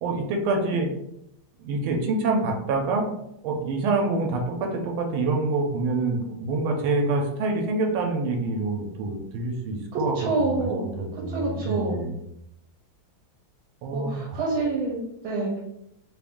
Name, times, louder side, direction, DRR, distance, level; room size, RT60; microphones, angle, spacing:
voice 1, 0.0-0.9 1.6-3.1 3.4-12.1 13.8-14.4, right 3 dB, 90° right, 2 dB, 1.5 m, -26 dB
voice 2, 10.1-10.8 11.1-12.1 13.9-15.6, right 3 dB, 70° right, -3 dB, 1.5 m, -27 dB
3.5 x 2.5 x 3.5 m, 0.81 s
omnidirectional pair, 2.3 m